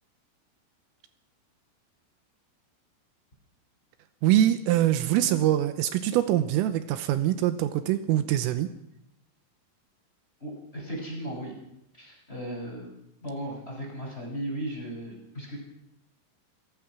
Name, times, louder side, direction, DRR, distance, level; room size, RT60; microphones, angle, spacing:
voice 1, 4.2-8.7, right 12 dB, 80° right, 10 dB, 3.5 m, -24 dB
voice 2, 10.4-11.5 11.9-12.9 13.2-15.6, right 1 dB, 10° left, -1 dB, 6.0 m, -36 dB
28.5 x 16.0 x 6.1 m, 0.81 s
omnidirectional pair, 6.0 m